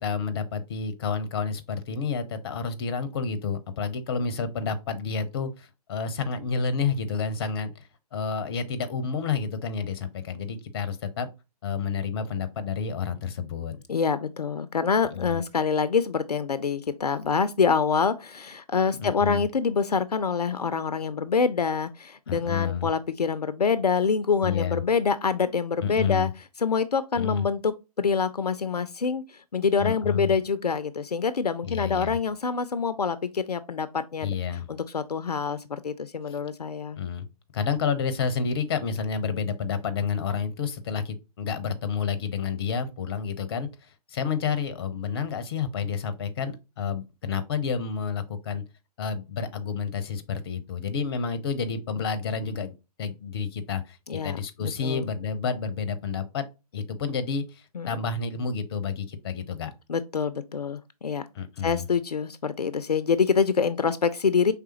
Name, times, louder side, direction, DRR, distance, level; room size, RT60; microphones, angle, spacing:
voice 1, 0.0-11.3 11.6-13.8 15.1-15.4 19.0-19.4 22.3-22.9 24.4-24.8 25.8-26.3 27.2-27.5 29.8-30.3 31.6-32.2 34.2-34.7 36.3-36.4 37.0-37.2 37.5-48.6 49.0-54.0 54.2-56.4 56.7-59.7 61.3-61.8, left 6 dB, 40° left, 0.6 m, -30 dB
voice 2, 13.9-26.3 26.6-29.2 29.5-34.3 34.7-37.0 54.1-55.1 57.7-58.0 59.9-61.2 61.6-64.5, left 5 dB, 80° left, 0.4 m, -26 dB
4.8 x 3.4 x 2.8 m
figure-of-eight pair, 125°, 20 cm